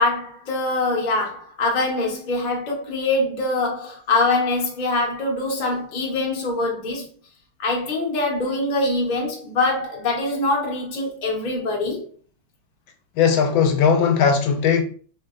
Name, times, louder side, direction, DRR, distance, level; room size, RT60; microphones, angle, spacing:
voice 1, 0.0-7.1 7.6-12.1, left 2 dB, 55° left, 0.5 m, -23 dB
voice 2, 13.2-14.8, left 6 dB, 80° left, 1.3 m, -18 dB
3.1 x 2.8 x 2.4 m
omnidirectional pair, 2.2 m